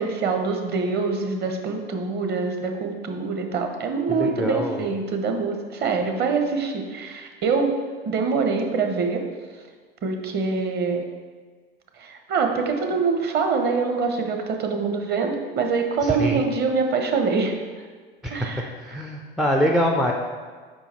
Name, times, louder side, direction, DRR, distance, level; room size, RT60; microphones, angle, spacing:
voice 1, 0.0-7.7 8.0-9.2 10.0-11.0 12.0-17.6 18.3-19.0, right 4 dB, 35° right, 4 dB, 0.8 m, -25 dB
voice 2, 4.1-4.9 16.0-16.4 18.2-18.3 18.7-20.1, equal, ahead, 0 dB, 0.3 m, -24 dB
5.0 x 4.7 x 4.2 m, 1.5 s
hypercardioid pair, 85°, 30 cm